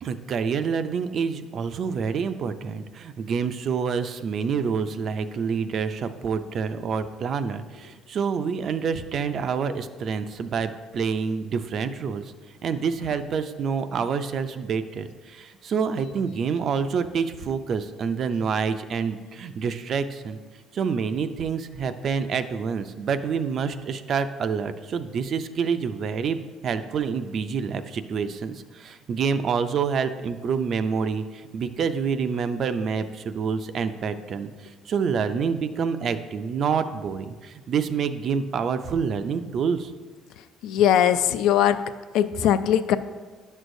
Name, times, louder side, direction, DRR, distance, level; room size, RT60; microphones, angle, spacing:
voice 1, 0.0-12.2 12.6-20.4 20.7-34.5 34.9-39.9, right 6 dB, 40° right, 11 dB, 0.3 m, -27 dB
voice 2, 40.4-41.8 42.1-43.0, left 10 dB, 70° left, 12 dB, 0.3 m, -21 dB
10.5 x 6.3 x 2.6 m, 1.4 s
cardioid pair, 165°, 0 cm